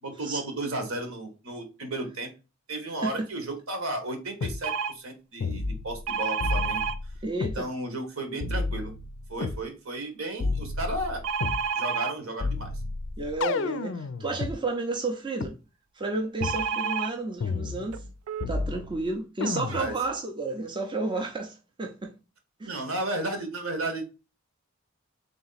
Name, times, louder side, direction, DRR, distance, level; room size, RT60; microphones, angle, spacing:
voice 1, 0.0-2.3 2.7-6.8 7.4-8.9 9.3-11.2 11.7-12.7 19.7-19.9 22.6-24.0, right 2 dB, 75° right, 1.2 m, -33 dB
sound 1, 4.4-4.6 5.4-6.1 6.4-7.6 8.4-9.6 10.4-11.6 12.4-14.6 15.4-15.5 16.4-16.6 17.4-18.1 18.4-19.0 19.4-20.0, left 3 dB, 60° left, 0.4 m, -31 dB
sound 2, 4.6-4.9 6.1-7.0 11.2-12.1 16.4-17.1 17.9-18.0 18.3-18.5, right 6 dB, 90° right, 0.4 m, -29 dB
voice 2, 7.2-7.7 13.2-15.6 15.9-18.0 18.5-22.1 22.6-22.7, right 3 dB, 20° right, 0.5 m, -31 dB
3.5 x 2.9 x 3.9 m
head